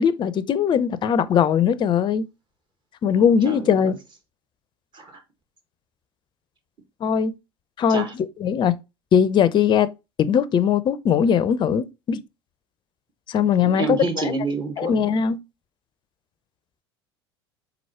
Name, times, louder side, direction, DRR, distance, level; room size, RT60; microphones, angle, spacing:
voice 1, 0.0-2.3 3.0-3.9 7.0-7.3 7.8-8.1 8.4-8.8 9.1-9.9 10.2-12.2 13.3-14.3 14.8-15.4, left 7 dB, 35° left, 0.5 m, -20 dB
voice 2, 3.1-4.0 4.9-5.2 7.9-8.1 13.6-14.9, right 4 dB, 35° right, 1.5 m, -29 dB
4.6 x 4.0 x 2.9 m
figure-of-eight pair, 70°, 14 cm